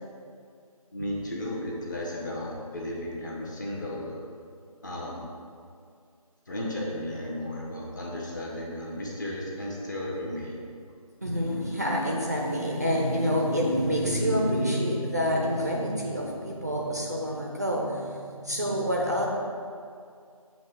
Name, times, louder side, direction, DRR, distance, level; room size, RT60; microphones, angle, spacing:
voice 1, 0.9-4.2 4.8-5.3 6.5-10.6, left 1 dB, 30° left, -3 dB, 1.0 m, -34 dB
voice 2, 11.2-19.3, equal, 30° right, -1 dB, 0.5 m, -27 dB
7.4 x 2.8 x 5.8 m, 2.3 s
figure-of-eight pair, 160°, 19 cm